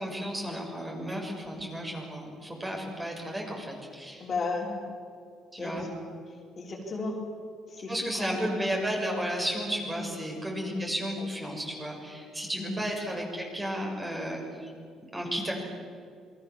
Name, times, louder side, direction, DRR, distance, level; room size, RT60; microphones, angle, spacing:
voice 1, 0.0-4.3 5.5-5.9 7.9-14.7 15.1-15.6, equal, 15° right, 0 dB, 6.4 m, -33 dB
voice 2, 4.2-4.8 5.6-5.9 6.6-7.2 7.7-8.4 9.9-10.1 12.6-12.8, left 3 dB, 40° left, 0 dB, 4.4 m, -34 dB
28.0 x 22.5 x 7.4 m, 2.4 s
cardioid pair, 125°, 0 cm